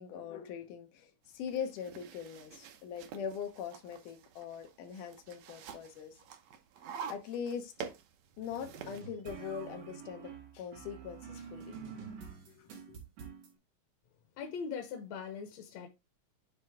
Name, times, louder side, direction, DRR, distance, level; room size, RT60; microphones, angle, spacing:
voice 1, 0.0-6.1 7.1-7.9 8.4-11.8 12.6-13.0, left 7 dB, 80° left, 2.6 m, -42 dB
sound 1, 1.3-9.0, right 8 dB, 70° right, 1.9 m, -48 dB
sound 2, 8.6-13.5, right 6 dB, 85° right, 3.7 m, -47 dB
voice 2, 14.4-15.9, left 6 dB, 65° left, 2.1 m, -40 dB
9.7 x 3.7 x 3.5 m
omnidirectional pair, 3.6 m